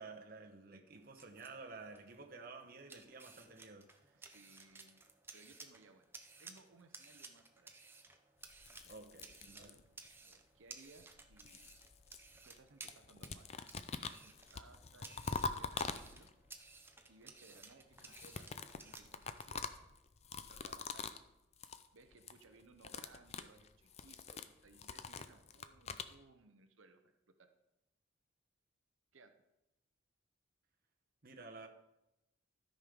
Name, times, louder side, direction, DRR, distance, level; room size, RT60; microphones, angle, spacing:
voice 1, 0.0-3.9 8.9-9.8 17.5-17.6 31.2-31.7, right 3 dB, 50° right, 3 dB, 1.0 m, -52 dB
sound 1, 0.9-19.5, right 3 dB, 10° right, 0.6 m, -57 dB
voice 2, 4.1-5.0 5.3-6.1 6.4-7.7 8.8-9.0 10.2-11.7 12.5-13.7 14.1-16.3 17.1-19.7 20.5-21.1 21.9-27.5 29.1-29.3, right 3 dB, 85° right, 7 dB, 0.8 m, -63 dB
sound 2, 8.5-10.1 11.0-12.6 12.9-16.5 17.9-21.3 21.5-21.9 22.1-22.4 22.7-26.1, left 5 dB, 30° left, 0.4 m, -45 dB
13.0 x 5.4 x 5.2 m, 0.91 s
head